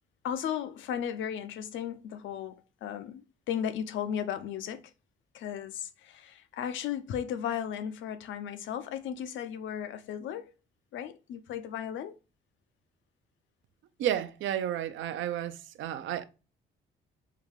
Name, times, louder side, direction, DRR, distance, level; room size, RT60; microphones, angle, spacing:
voice 1, 0.2-4.8 5.3-10.5 10.9-12.1, left 9 dB, 75° left, 0.5 m, -35 dB
voice 2, 14.0-16.2, right 11 dB, 75° right, 0.5 m, -32 dB
3.7 x 2.3 x 3.0 m
cardioid pair, 90°, 20 cm